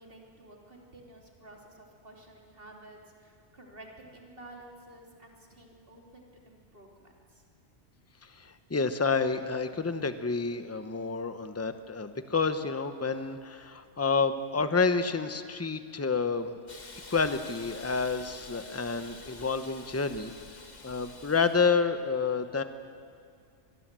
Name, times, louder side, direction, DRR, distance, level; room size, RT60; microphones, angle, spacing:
voice 1, 0.0-7.4, right 1 dB, 50° right, 0 dB, 3.4 m, -52 dB
voice 2, 8.2-16.6 17.1-20.3 20.8-22.6, left 4 dB, 15° left, 9 dB, 0.9 m, -29 dB
Hiss, 16.7-21.6, left 3 dB, 40° left, 1.5 m, -48 dB
25.0 x 20.5 x 7.6 m, 2.2 s
omnidirectional pair, 1.2 m